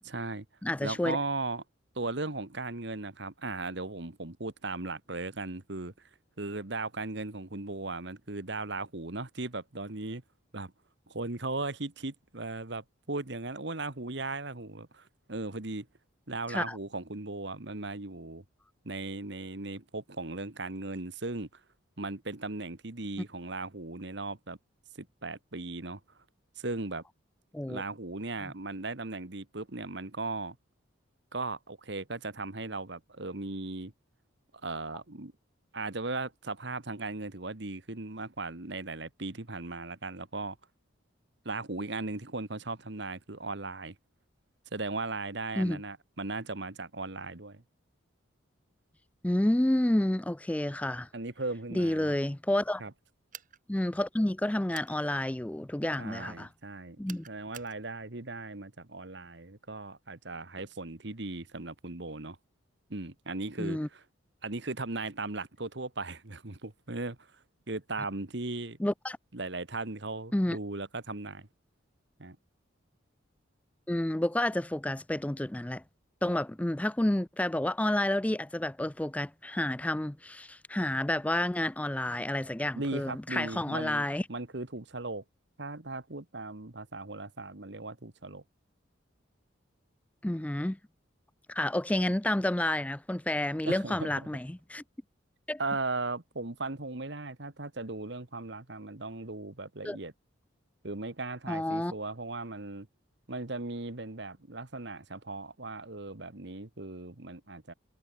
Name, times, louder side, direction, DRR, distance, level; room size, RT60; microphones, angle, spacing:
voice 1, 0.0-0.4 0.8-1.6 1.9-6.1 6.4-10.2 10.5-10.7 11.1-15.9 16.3-18.4 18.8-21.6 22.0-24.6 24.9-26.0 26.6-27.0 27.7-30.6 31.3-33.9 34.6-35.3 35.7-40.6 41.4-43.9 44.7-47.6 51.1-52.1 52.8-52.9 56.0-57.0 57.3-62.4 62.9-64.0 64.4-68.8 69.3-71.5 72.2-72.4 82.7-85.2 85.6-88.4 93.6-94.1 95.6-100.1 100.8-102.9 103.3-107.7, right 3 dB, 60° right, 1.6 m, -37 dB
voice 2, 0.6-1.2 16.5-16.8 27.5-27.8 45.6-45.8 49.2-51.1 51.7-52.8 53.7-56.5 57.0-57.2 63.6-63.9 68.8-69.2 70.3-70.6 73.9-75.8 76.2-84.2 90.2-90.8 91.5-94.8 95.5-95.6 99.8-100.0 101.5-101.9, left 1 dB, 5° left, 0.3 m, -30 dB
sound 1, 53.3-53.6 54.7-55.0 57.1-57.8, right 10 dB, 40° right, 4.0 m, -48 dB
head